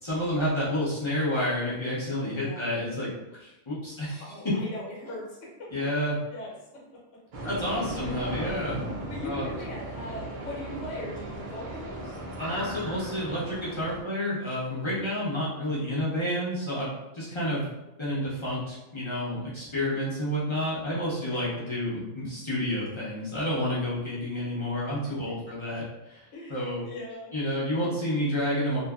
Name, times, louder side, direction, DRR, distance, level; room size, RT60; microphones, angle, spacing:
voice 1, 0.0-3.1 3.4-4.2 5.7-6.2 7.4-8.8 9.2-9.5 12.4-16.9 17.1-17.6 18.0-25.8 26.1-26.2 26.5-26.8 27.3-28.8, left 1 dB, 30° left, -9 dB, 0.5 m, -29 dB
voice 2, 4.2-5.7 6.3-6.6 7.4-7.5 7.9-8.6 9.1-12.2 14.9-15.3 21.3-21.5 26.3-27.3, left 1 dB, 70° left, -4 dB, 1.1 m, -40 dB
sound 1, 7.3-14.0, right 1 dB, 75° right, 0.4 m, -37 dB
2.6 x 2.5 x 2.3 m, 0.96 s
omnidirectional pair, 1.4 m